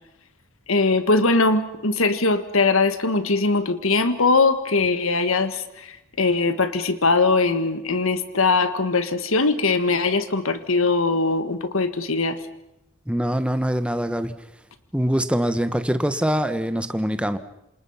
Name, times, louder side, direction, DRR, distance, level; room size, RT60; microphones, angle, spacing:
voice 1, 0.7-12.4, left 3 dB, 70° left, 10 dB, 1.7 m, -21 dB
voice 2, 13.1-14.3 14.9-17.4, equal, 5° right, 10 dB, 1.2 m, -23 dB
28.0 x 26.5 x 5.7 m, 0.88 s
head